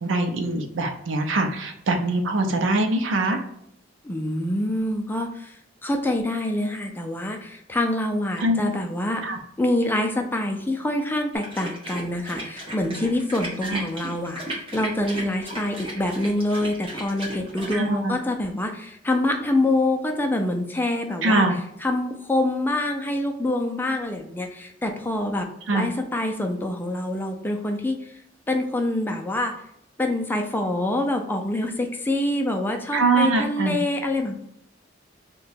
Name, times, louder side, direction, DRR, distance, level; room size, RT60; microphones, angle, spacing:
voice 1, 0.0-3.5 8.4-8.6 9.2-9.4 13.6-13.8 17.7-18.1 21.2-21.5 25.7-25.9 32.9-33.8, right 2 dB, 85° right, 5 dB, 0.5 m, -23 dB
voice 2, 4.0-9.2 9.6-21.5 21.8-28.1 28.5-29.5 30.0-34.3, left 1 dB, 10° left, 3 dB, 0.3 m, -26 dB
sound 1, 11.3-17.8, right 1 dB, 30° right, 1.0 m, -35 dB
2.8 x 2.2 x 4.1 m, 0.71 s
head